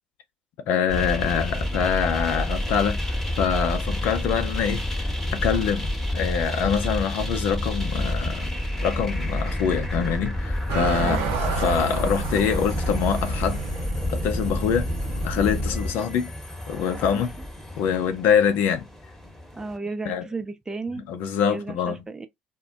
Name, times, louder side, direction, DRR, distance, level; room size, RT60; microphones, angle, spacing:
voice 1, 0.7-8.5 8.8-13.6 14.1-14.9 15.2-16.3 16.7-17.3 17.8-18.8 20.1-20.2 21.1-22.0, left 7 dB, 60° left, 0.6 m, -25 dB
sound 1, 0.9-19.8, left 1 dB, 10° left, 1.0 m, -29 dB
sound 2, 10.7-15.7, right 6 dB, 60° right, 0.6 m, -32 dB
voice 2, 11.0-11.3 17.1-17.3 19.5-21.0 21.5-22.3, right 3 dB, 15° right, 0.6 m, -34 dB
2.2 x 2.1 x 3.8 m
figure-of-eight pair, 55°, 4 cm